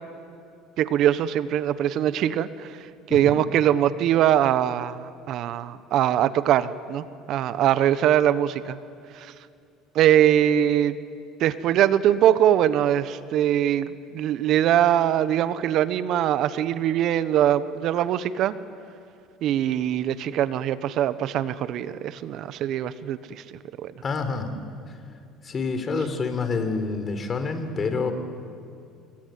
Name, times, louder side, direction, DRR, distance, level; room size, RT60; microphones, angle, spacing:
voice 1, 0.8-2.7 3.1-8.8 9.2-9.3 9.9-11.0 11.4-18.5 19.4-23.4 23.8-23.9, right 11 dB, 60° right, 14 dB, 1.1 m, -22 dB
voice 2, 24.0-24.5 24.9-25.0 25.4-28.1, left 4 dB, 35° left, 8 dB, 4.0 m, -27 dB
28.5 x 22.0 x 9.5 m, 2.4 s
supercardioid pair, 95°, 0 cm